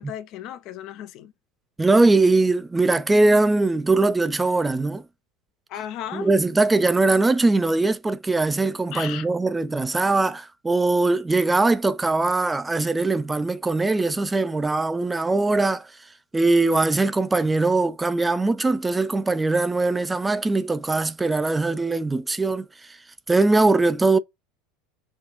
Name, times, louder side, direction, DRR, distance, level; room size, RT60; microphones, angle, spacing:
voice 1, 0.0-1.3 5.7-6.3 8.9-9.3, left 11 dB, 55° left, 0.5 m, -35 dB
voice 2, 1.8-5.0 6.1-15.9 16.3-22.7 23.3-24.2, right 3 dB, 15° right, 0.4 m, -21 dB
4.2 x 2.4 x 3.0 m
hypercardioid pair, 80°, 0 cm